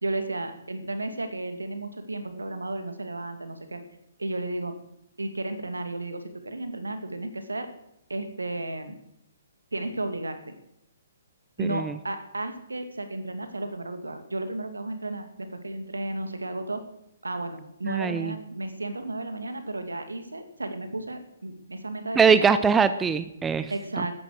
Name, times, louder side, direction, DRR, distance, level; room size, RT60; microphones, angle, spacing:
voice 1, 0.0-3.8 4.2-4.7 5.2-7.7 8.1-8.9 9.7-10.4 11.6-16.8 17.2-22.6 23.7-24.1, right 2 dB, 75° right, 8 dB, 2.2 m, -33 dB
voice 2, 11.6-11.9 17.8-18.3 22.2-23.7, right 6 dB, 10° right, 13 dB, 0.6 m, -22 dB
14.0 x 11.5 x 8.0 m, 0.81 s
figure-of-eight pair, 125°, 0 cm